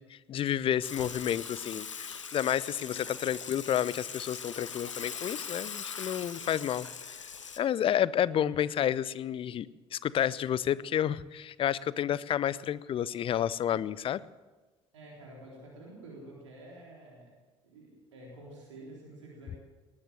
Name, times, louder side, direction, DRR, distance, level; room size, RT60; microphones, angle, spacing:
voice 1, 0.0-7.3 7.6-9.7 9.9-14.2, left 10 dB, 35° left, 20 dB, 0.5 m, -30 dB
Water / Water tap faucet / Sink (filling or washing), 0.8-7.6, left 6 dB, 80° left, 0.8 m, -41 dB
voice 2, 14.9-17.4 17.6-19.6, right 1 dB, 75° right, -3 dB, 3.8 m, -49 dB
19.5 x 9.8 x 7.7 m, 1.2 s
figure-of-eight pair, 55°, 16 cm